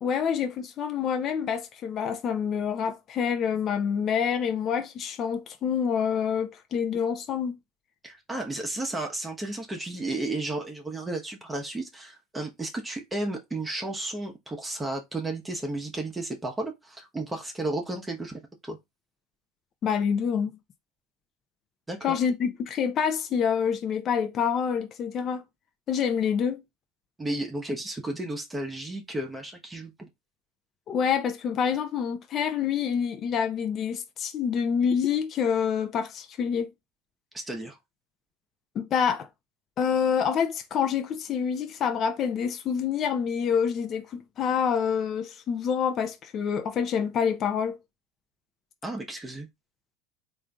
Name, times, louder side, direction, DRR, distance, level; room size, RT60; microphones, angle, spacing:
voice 1, 0.0-7.5 19.8-20.6 22.0-25.4 25.9-26.6 30.9-36.7 38.7-39.3 39.8-47.8, left 7 dB, 45° left, 0.7 m, -27 dB
voice 2, 8.0-18.8 21.9-22.2 27.2-30.1 37.3-37.8 48.8-49.5, right 2 dB, 15° right, 0.9 m, -33 dB
3.6 x 2.6 x 3.4 m
hypercardioid pair, 90°, 0 cm